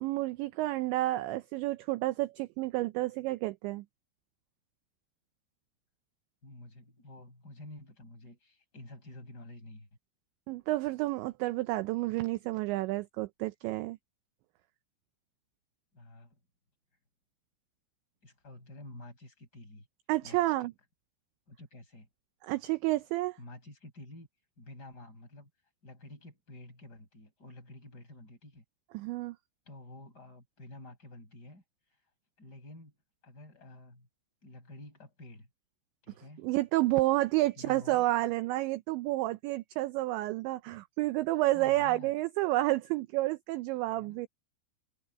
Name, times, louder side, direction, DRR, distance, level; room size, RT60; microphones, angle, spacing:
voice 1, 0.0-3.8 10.5-14.0 20.1-20.7 22.4-23.4 28.9-29.4 36.4-44.3, right 18 dB, 85° right, 2.6 m, -30 dB
voice 2, 6.4-9.9 15.9-16.4 18.2-19.9 20.2-20.7 21.5-22.1 23.4-24.3 24.6-25.5 25.8-28.6 29.7-31.6 32.4-32.9 33.2-34.1 34.4-35.5 36.0-36.5 37.6-38.0 41.5-42.1 44.0-44.2, left 1 dB, 20° left, 8.1 m, -50 dB
omnidirectional pair, 5.9 m